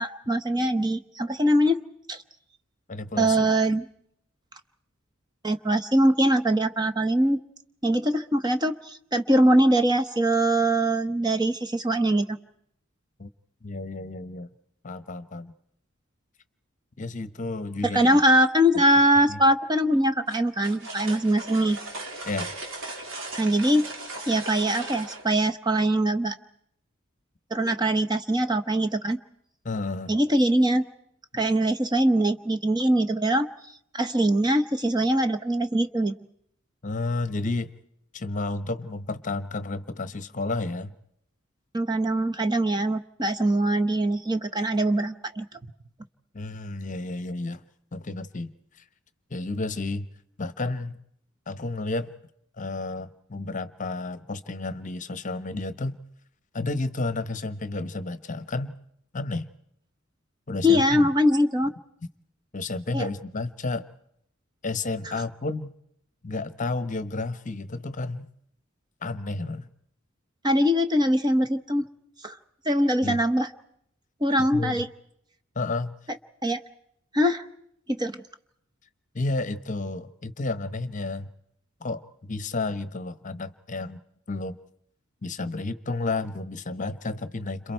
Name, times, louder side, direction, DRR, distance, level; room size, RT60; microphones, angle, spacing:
voice 1, 0.0-1.8 2.1-2.2 3.2-3.9 5.4-7.4 7.8-12.4 17.8-21.8 23.4-23.9 24.3-26.4 27.5-29.2 30.1-30.8 31.3-33.5 33.9-36.1 41.7-45.6 60.6-61.7 62.9-63.1 65.1-65.2 70.4-71.8 72.2-72.4 72.6-73.5 74.2-74.9 76.4-76.6 77.1-77.4 77.9-78.2, right 1 dB, 20° right, 7 dB, 0.9 m, -22 dB
voice 2, 2.9-3.5 13.2-13.3 13.6-14.5 14.8-15.5 17.0-18.1 19.3-19.4 22.2-22.5 29.6-30.1 31.3-31.4 36.8-37.7 38.1-40.9 46.3-47.6 47.9-48.5 49.3-50.1 50.4-51.0 51.5-52.1 52.6-56.0 56.5-58.7 59.1-59.5 60.5-61.1 62.5-63.9 64.6-65.7 66.2-68.3 69.0-69.7 73.0-73.2 74.5-74.8 75.5-75.9 79.1-81.3 81.8-82.0 82.3-84.0 84.3-84.6 85.2-87.7, left 3 dB, 40° left, 13 dB, 0.9 m, -31 dB
sound 1, 20.3-25.2, right 2 dB, 70° right, 3.7 m, -37 dB
30.0 x 27.0 x 4.5 m, 0.72 s
head